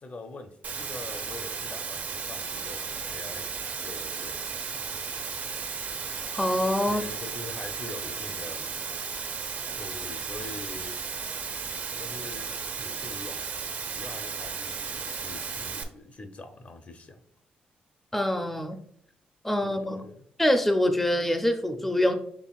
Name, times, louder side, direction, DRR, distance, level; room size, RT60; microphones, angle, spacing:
voice 1, 0.0-3.5 3.8-4.8 6.8-8.7 9.8-11.0 11.9-13.4 13.9-17.2 19.6-20.2, left 2 dB, 45° left, 6 dB, 0.7 m, -44 dB
Water, 0.6-15.8, right 5 dB, 55° right, 0.7 m, -35 dB
voice 2, 6.3-7.0 18.1-18.8 19.4-20.1 20.4-22.1, left 1 dB, 5° left, 6 dB, 0.5 m, -25 dB
6.2 x 3.3 x 2.4 m, 0.66 s
cardioid pair, 80°, 3 cm